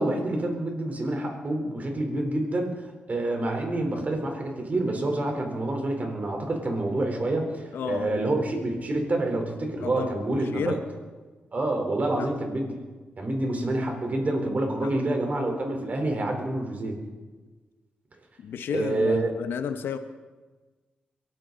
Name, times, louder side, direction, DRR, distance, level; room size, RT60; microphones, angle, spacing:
voice 1, 0.0-2.8 3.1-10.8 11.5-12.7 13.2-17.0 18.7-19.3, right 2 dB, 45° right, 3 dB, 4.0 m, -27 dB
voice 2, 7.7-8.2 9.8-10.9 12.2-12.3 14.8-14.9 18.4-20.0, left 7 dB, 85° left, 9 dB, 0.9 m, -32 dB
22.5 x 13.0 x 4.0 m, 1.3 s
cardioid pair, 55°, 4 cm